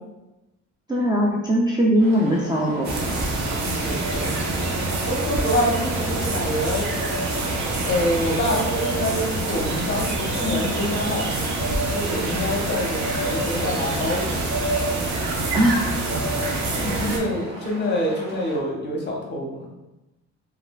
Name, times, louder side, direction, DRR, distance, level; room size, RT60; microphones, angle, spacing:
voice 1, 0.9-3.3 15.5-15.9, equal, 15° right, -5 dB, 0.3 m, -20 dB
sound 1, 2.0-18.6, right 1 dB, 90° right, 1.4 m, -39 dB
sound 2, 2.8-17.2, right 2 dB, 60° right, 0.6 m, -26 dB
voice 2, 3.6-4.3 5.0-6.9 7.8-14.5 16.8-19.7, left 1 dB, 35° left, -2 dB, 0.7 m, -26 dB
3.1 x 2.4 x 2.2 m, 0.99 s
cardioid pair, 115°, 32 cm